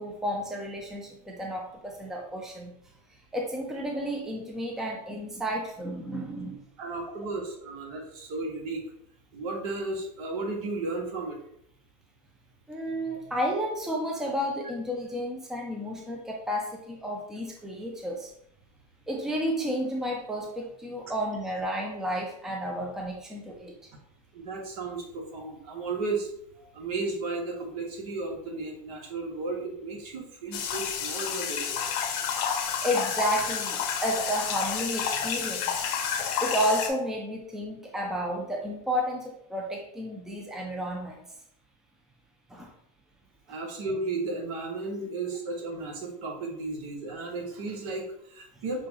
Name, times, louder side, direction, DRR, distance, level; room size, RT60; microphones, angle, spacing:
voice 1, 0.0-2.7 3.3-6.6 12.7-18.3 19.1-23.7 32.8-35.8 36.4-41.2 42.5-42.7 43.5-43.6 45.0-45.1, equal, ahead, 0 dB, 0.6 m, -32 dB
voice 2, 6.8-8.8 9.3-11.4 24.3-26.3 26.7-31.9 43.5-48.9, right 3 dB, 65° right, 0 dB, 1.5 m, -34 dB
sound 1, 30.5-36.9, left 7 dB, 55° left, 0.9 m, -30 dB
6.6 x 2.5 x 2.9 m, 0.72 s
supercardioid pair, 120°, 20 cm